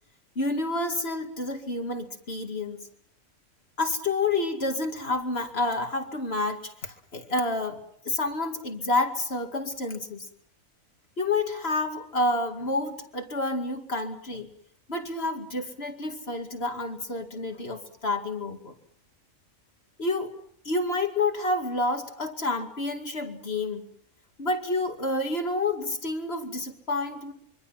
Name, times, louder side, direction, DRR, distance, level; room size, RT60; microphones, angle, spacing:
voice 1, 0.4-2.9 3.8-10.3 11.2-14.5 14.9-18.7 20.0-20.3 20.6-23.8 24.4-27.3, left 2 dB, 50° left, 5 dB, 2.6 m, -29 dB
25.0 x 24.5 x 5.8 m, 0.68 s
omnidirectional pair, 1.4 m